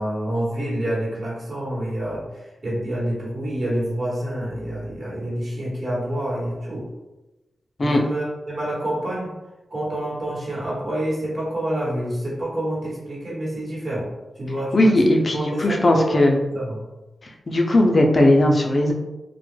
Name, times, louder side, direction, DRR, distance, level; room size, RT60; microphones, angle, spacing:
voice 1, 0.0-2.2 2.6-6.9 7.8-9.3 9.7-14.1 14.4-14.9 15.3-16.8, right 1 dB, 60° right, -6 dB, 1.0 m, -27 dB
voice 2, 14.7-16.4 17.5-18.9, left 1 dB, 40° left, 1 dB, 0.4 m, -17 dB
2.2 x 2.0 x 3.1 m, 1.0 s
cardioid pair, 75°, 0 cm